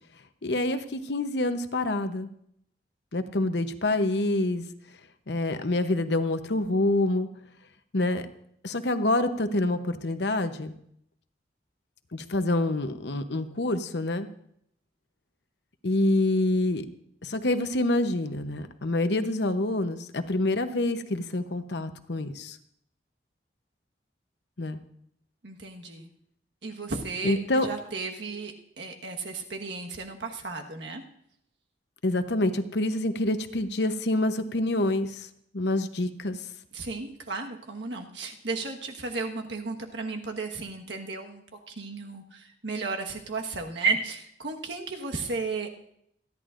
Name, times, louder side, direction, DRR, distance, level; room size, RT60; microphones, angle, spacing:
voice 1, 0.4-2.3 3.1-4.6 5.3-7.3 7.9-8.2 8.6-10.7 12.1-14.3 15.8-16.9 17.2-22.6 24.6-24.8 27.2-27.7 32.0-35.3 35.5-36.4, left 2 dB, 75° left, 9 dB, 0.9 m, -26 dB
voice 2, 25.4-26.1 26.6-31.0 36.7-45.7, right 3 dB, 85° right, 2 dB, 1.5 m, -34 dB
27.0 x 11.0 x 2.6 m, 0.71 s
head